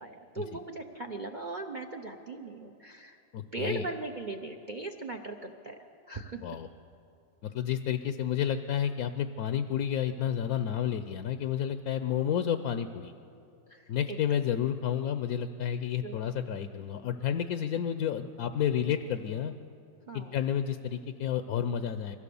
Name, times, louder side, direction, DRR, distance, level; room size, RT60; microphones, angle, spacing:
voice 1, 0.0-3.2 3.5-5.8 6.1-6.6 13.7-14.2 16.0-16.3 20.1-20.4, right 2 dB, 45° right, 5 dB, 0.6 m, -39 dB
voice 2, 3.3-3.9 6.4-6.7 7.4-13.1 13.9-19.5 20.1-22.2, left 9 dB, 65° left, 9 dB, 1.0 m, -30 dB
23.5 x 16.0 x 7.0 m, 2.5 s
omnidirectional pair, 2.0 m